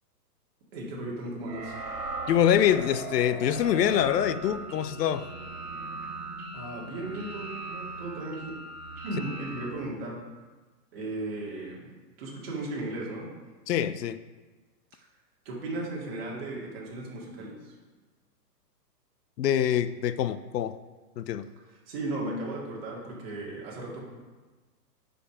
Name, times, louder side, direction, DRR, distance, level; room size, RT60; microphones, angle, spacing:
voice 1, 0.7-1.8 6.5-8.6 9.0-10.2 10.9-11.9 12.2-13.3 15.4-17.8 21.7-24.0, right 2 dB, 35° right, -4 dB, 2.3 m, -36 dB
sound 1, 1.5-9.7, right 3 dB, 65° right, 2.5 m, -39 dB
voice 2, 2.3-5.3 13.7-14.2 19.4-20.8 21.2-21.4, left 10 dB, 75° left, 13 dB, 0.6 m, -25 dB
8.9 x 5.2 x 5.0 m, 1.3 s
hypercardioid pair, 170°, 49 cm